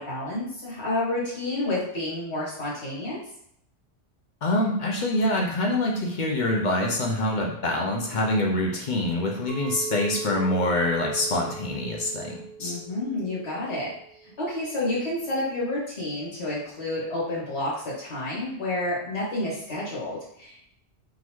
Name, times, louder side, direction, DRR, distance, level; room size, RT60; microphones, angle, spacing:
voice 1, 0.0-3.2 12.6-13.9 14.4-20.6, left 1 dB, 70° left, -7 dB, 1.7 m, -30 dB
voice 2, 4.4-12.7, left 1 dB, 55° left, -1 dB, 0.6 m, -25 dB
Chink clink, 9.5-14.7, right 6 dB, 85° right, 0.9 m, -40 dB
3.8 x 2.6 x 3.0 m, 0.71 s
omnidirectional pair, 1.2 m